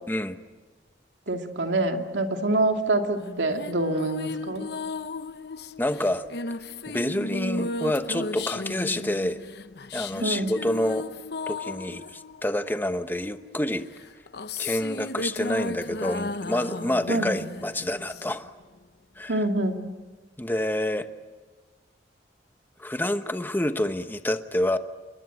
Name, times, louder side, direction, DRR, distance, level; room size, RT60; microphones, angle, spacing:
voice 1, 1.3-4.7 10.2-10.6 17.1-17.4 19.3-19.8, right 2 dB, 85° right, 4 dB, 2.5 m, -26 dB
sound 1, 3.2-13.1 13.9-18.6, left 3 dB, 65° left, 0.9 m, -35 dB
voice 2, 5.8-6.2 6.9-9.4 9.9-11.1 11.5-13.9 14.6-18.5 19.2-19.4 20.4-21.1 22.8-24.8, left 1 dB, 10° left, 9 dB, 1.0 m, -28 dB
28.5 x 21.0 x 9.2 m, 1.3 s
head